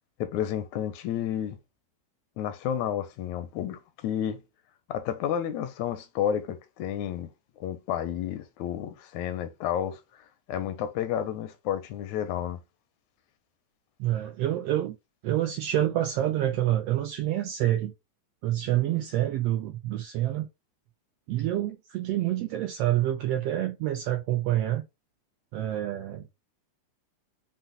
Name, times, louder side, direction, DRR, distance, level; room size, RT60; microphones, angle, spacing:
voice 1, 0.2-1.6 2.4-4.4 4.9-7.3 7.6-12.6, left 10 dB, 85° left, 2.0 m, -31 dB
voice 2, 14.0-15.0 15.2-17.9 18.4-20.5 21.3-24.8 25.5-26.3, right 13 dB, 85° right, 1.4 m, -27 dB
5.6 x 2.1 x 3.9 m
omnidirectional pair, 3.3 m